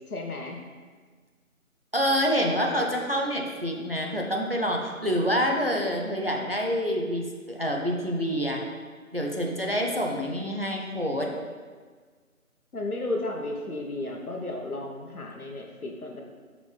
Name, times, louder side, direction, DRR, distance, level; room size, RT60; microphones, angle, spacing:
voice 1, 0.1-0.6 12.7-16.2, left 2 dB, 80° left, 1 dB, 1.2 m, -33 dB
voice 2, 1.9-8.6 9.1-11.3, equal, 45° right, 0 dB, 0.6 m, -27 dB
6.1 x 5.0 x 3.3 m, 1.5 s
figure-of-eight pair, 175°, 43 cm